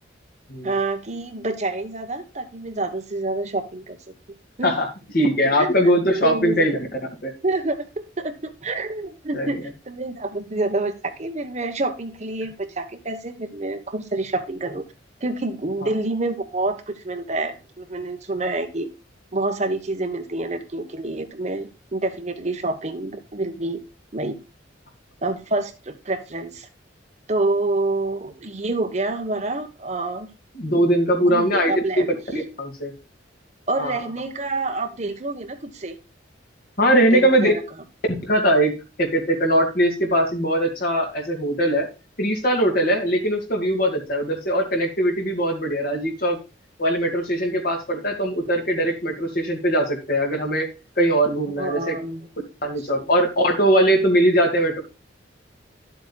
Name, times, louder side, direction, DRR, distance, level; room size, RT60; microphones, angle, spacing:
voice 1, 0.6-4.0 4.6-4.8 5.2-5.3 5.6-5.9 6.2-6.7 7.4-14.8 15.2-18.9 19.3-23.8 24.1-24.4 25.2-26.7 27.3-30.3 31.2-32.1 33.7-36.0 37.0-37.6 51.6-52.3 52.9-53.0, right 2 dB, 35° right, 7 dB, 1.1 m, -27 dB
voice 2, 5.1-6.9 7.2-7.3 9.3-9.6 15.8-15.9 30.5-32.1 32.3-32.9 33.8-34.0 36.8-37.5 38.2-41.9 42.2-46.4 46.8-50.7 51.0-52.0 52.6-54.8, equal, 50° left, 3 dB, 2.5 m, -21 dB
11.5 x 7.9 x 2.3 m, 0.29 s
head